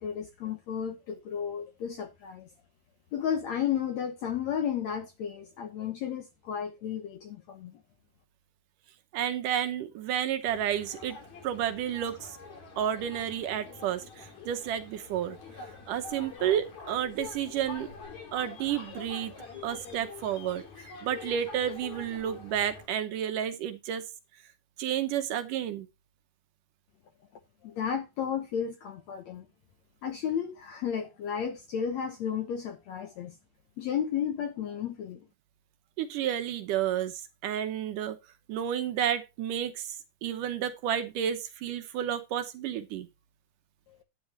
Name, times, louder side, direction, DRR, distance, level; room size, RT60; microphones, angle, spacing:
voice 1, 0.0-2.5 3.1-7.7 27.6-29.5 30.0-33.3 33.8-35.2, left 8 dB, 70° left, 1.7 m, -33 dB
voice 2, 9.1-11.2 11.4-12.4 12.8-15.4 15.9-17.9 18.3-19.3 19.6-24.0 24.8-25.9 36.0-38.2 38.5-43.1, right 10 dB, 70° right, 2.3 m, -31 dB
sound 1, 10.5-22.9, left 5 dB, 50° left, 4.3 m, -46 dB
11.5 x 9.7 x 2.9 m
omnidirectional pair, 4.2 m